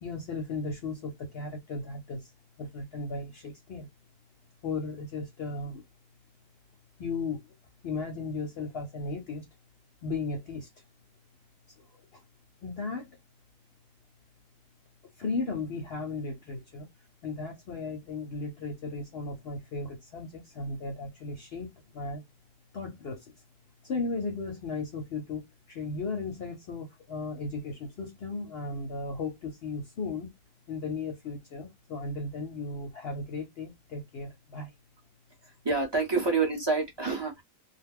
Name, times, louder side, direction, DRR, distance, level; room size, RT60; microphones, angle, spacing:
voice 1, 0.0-2.3 2.6-3.9 4.6-5.8 7.0-7.5 7.8-9.5 10.0-10.7 11.8-11.9 12.1-12.2 12.6-13.2 15.2-16.9 17.2-21.7 21.9-22.2 22.7-23.3 23.8-30.3 30.7-34.7, left 3 dB, 60° left, 0.7 m, -36 dB
voice 2, 35.6-37.4, right 4 dB, 25° right, 0.6 m, -27 dB
2.3 x 2.0 x 3.4 m
omnidirectional pair, 1.4 m